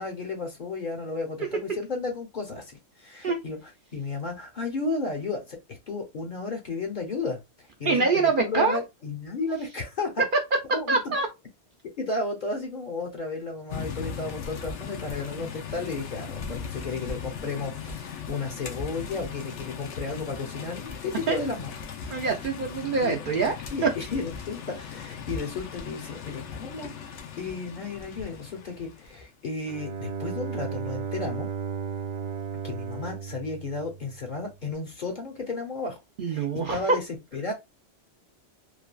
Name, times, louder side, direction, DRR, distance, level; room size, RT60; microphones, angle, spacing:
voice 1, 0.0-3.6 3.9-7.4 7.8-10.2 10.7-11.1 12.0-21.7 23.0-23.2 23.7-31.5 32.6-36.0 36.3-37.0 37.3-37.5, left 3 dB, 50° left, 0.8 m, -33 dB
voice 2, 7.9-8.8 10.9-11.3 21.3-21.4 22.1-23.5 23.8-23.9 36.2-36.8, right 4 dB, 55° right, 0.6 m, -24 dB
sound 1, 13.7-29.2, left 6 dB, 75° left, 0.9 m, -38 dB
Bowed string instrument, 29.7-34.5, right 6 dB, 80° right, 0.9 m, -34 dB
3.2 x 2.3 x 2.2 m
omnidirectional pair, 1.2 m